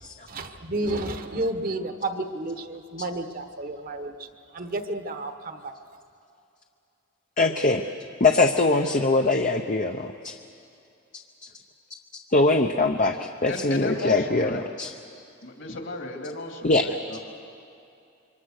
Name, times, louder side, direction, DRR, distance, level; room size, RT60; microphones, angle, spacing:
voice 1, 0.3-4.3 4.5-5.7, right 2 dB, 45° right, 8 dB, 1.1 m, -31 dB
voice 2, 7.4-7.8 8.2-10.3 12.3-14.9 16.6-16.8, left 3 dB, 40° left, 4 dB, 0.8 m, -22 dB
voice 3, 13.5-14.6 15.4-17.2, left 2 dB, 60° left, 3 dB, 2.7 m, -34 dB
26.5 x 23.5 x 6.6 m, 2.6 s
head